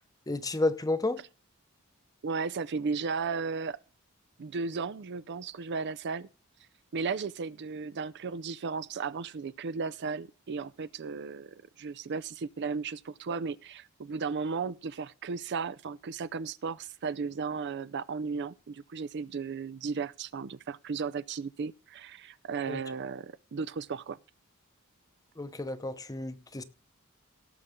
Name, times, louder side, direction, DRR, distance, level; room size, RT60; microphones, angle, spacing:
voice 1, 0.3-1.2 22.7-22.8 25.4-26.6, left 2 dB, 15° left, 0.8 m, -31 dB
voice 2, 2.2-3.8 4.4-6.3 6.9-24.2, right 5 dB, 55° right, 0.5 m, -35 dB
17.5 x 6.9 x 3.7 m
head